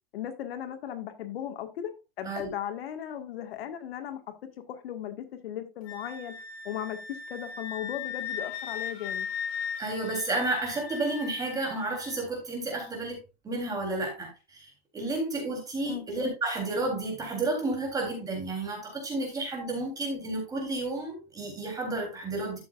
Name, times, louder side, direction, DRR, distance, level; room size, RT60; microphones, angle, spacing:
voice 1, 0.1-1.9 2.2-4.2 4.7-7.0 7.3-9.3 15.9-16.1, left 10 dB, 75° left, 1.9 m, -37 dB
Wind instrument woodwind instrument, 5.8-12.2, left 7 dB, 90° left, 2.5 m, -38 dB
voice 2, 9.8-22.6, right 2 dB, 10° right, 3.5 m, -31 dB
12.5 x 7.2 x 2.5 m
supercardioid pair, 170°, 30 cm